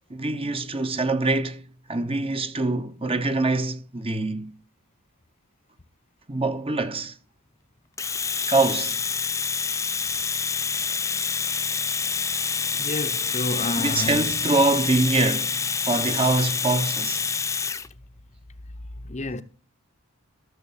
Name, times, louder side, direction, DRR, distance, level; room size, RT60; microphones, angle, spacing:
voice 1, 0.1-4.5 6.3-7.1 8.5-9.0 13.8-17.2, right 2 dB, 25° right, 1.0 m, -24 dB
Domestic sounds home sounds, 8.0-17.9, left 5 dB, 15° left, 0.4 m, -27 dB
voice 2, 12.8-14.3 19.0-19.4, left 2 dB, 35° left, 0.8 m, -30 dB
14.5 x 6.8 x 4.3 m
head